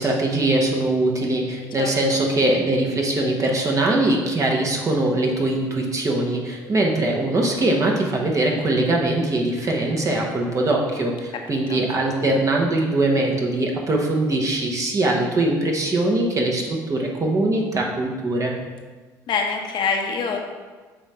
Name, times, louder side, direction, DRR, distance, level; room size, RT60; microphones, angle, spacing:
voice 1, 0.0-18.5, right 2 dB, 35° right, 0 dB, 1.4 m, -22 dB
voice 2, 1.8-2.2 11.5-11.8 19.3-20.4, left 5 dB, 60° left, 2 dB, 1.0 m, -26 dB
7.1 x 2.9 x 4.9 m, 1.4 s
hypercardioid pair, 70°, 9 cm